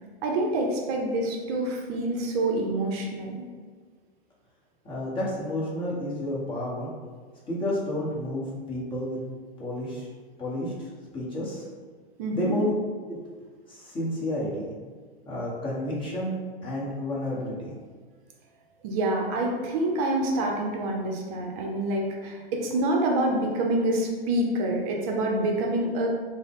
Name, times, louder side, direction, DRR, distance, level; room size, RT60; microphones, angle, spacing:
voice 1, 0.2-3.5 12.2-12.6 18.8-26.1, right 1 dB, 40° right, 1 dB, 0.6 m, -27 dB
voice 2, 4.8-6.9 7.5-9.2 9.6-10.1 10.4-10.9 11.1-11.6 12.3-12.7 13.1-13.2 13.7-14.7 15.3-16.4 16.6-17.7, left 1 dB, 15° left, -5 dB, 0.9 m, -30 dB
3.5 x 2.1 x 3.5 m, 1.5 s
hypercardioid pair, 115°, 31 cm